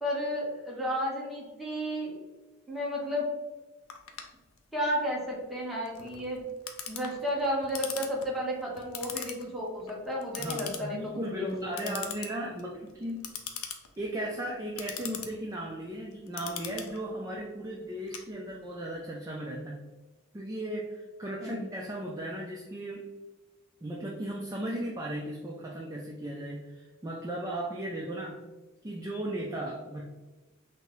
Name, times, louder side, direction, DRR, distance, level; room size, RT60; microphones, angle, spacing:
voice 1, 0.0-2.1 2.7-3.2 4.7-6.4 6.9-11.5 11.8-12.0 21.4-21.6, equal, ahead, -5 dB, 0.9 m, -32 dB
Clock, 3.9-18.8, left 8 dB, 85° left, 0.5 m, -42 dB
voice 2, 10.4-13.6 14.0-19.8 20.3-23.1 23.8-28.4 28.8-30.0, right 1 dB, 15° right, -2 dB, 0.3 m, -36 dB
5.7 x 2.0 x 3.0 m, 1.2 s
head